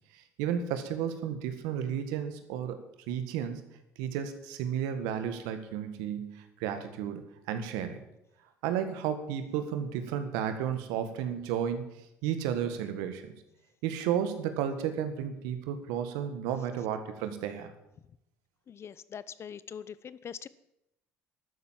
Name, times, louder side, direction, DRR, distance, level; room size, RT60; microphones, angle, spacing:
voice 1, 0.1-2.8 3.1-3.6 4.0-7.2 7.5-8.0 8.6-12.0 12.2-13.3 13.8-17.7, right 9 dB, 85° right, 9 dB, 1.8 m, -33 dB
voice 2, 18.7-20.5, left 8 dB, 45° left, 18 dB, 0.8 m, -43 dB
12.0 x 10.0 x 7.5 m, 0.83 s
supercardioid pair, 85°, 6 cm